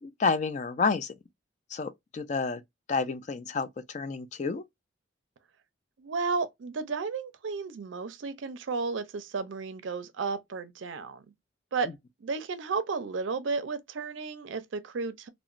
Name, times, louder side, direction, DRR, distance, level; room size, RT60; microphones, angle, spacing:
voice 1, 0.0-1.1 1.7-2.6 2.9-4.6, left 4 dB, 35° left, 0.3 m, -30 dB
voice 2, 6.0-11.3 11.7-11.9 12.2-15.3, right 4 dB, 70° right, 0.4 m, -33 dB
2.8 x 2.1 x 2.4 m
head